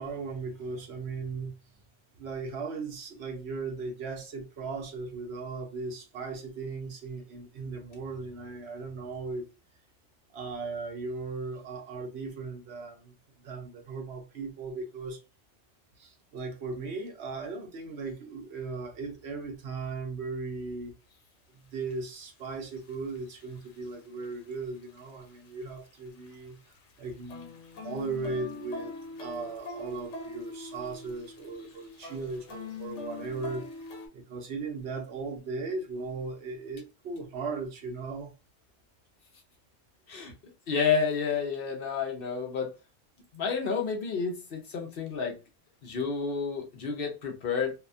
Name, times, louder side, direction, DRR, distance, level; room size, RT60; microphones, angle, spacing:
voice 1, 0.0-1.5 2.2-9.5 10.3-13.1 13.4-15.2 16.0-20.9 21.5-26.6 27.0-33.9 34.1-38.3, right 4 dB, 70° right, 1.0 m, -37 dB
sound 1, 21.1-21.2 21.9-22.0 22.8-24.0 24.2-24.5 24.8-26.4 26.7-34.1, left 3 dB, 85° left, 1.0 m, -42 dB
voice 2, 40.7-42.7 43.3-45.4 45.8-47.7, left 5 dB, 60° left, 0.8 m, -30 dB
2.7 x 2.2 x 2.5 m
omnidirectional pair, 1.2 m